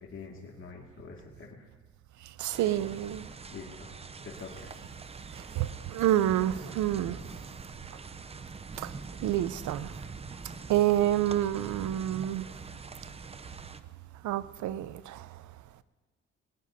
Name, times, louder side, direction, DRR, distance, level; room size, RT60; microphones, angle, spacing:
voice 1, 0.1-1.7 2.6-2.9 3.5-4.7, left 4 dB, 45° left, 2.1 m, -46 dB
voice 2, 2.4-3.3 5.6-7.2 8.8-8.9 9.2-9.9 10.7-12.5 14.2-15.3, right 12 dB, 75° right, 0.6 m, -28 dB
sound 1, 2.5-13.8, right 4 dB, 20° right, 0.6 m, -44 dB
21.0 x 18.5 x 2.7 m
cardioid pair, 90°, 30 cm